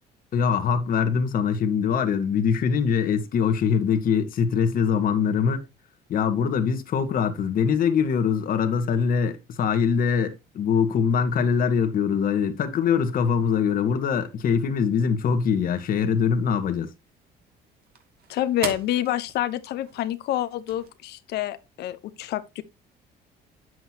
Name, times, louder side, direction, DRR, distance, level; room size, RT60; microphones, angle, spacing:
voice 1, 0.3-5.6 6.1-16.9, left 6 dB, 55° left, 1.6 m, -23 dB
sound 1, 15.6-20.9, right 7 dB, 65° right, 2.0 m, -41 dB
voice 2, 18.3-22.6, left 13 dB, 75° left, 1.0 m, -28 dB
9.2 x 7.8 x 2.9 m
cardioid pair, 110°, 17 cm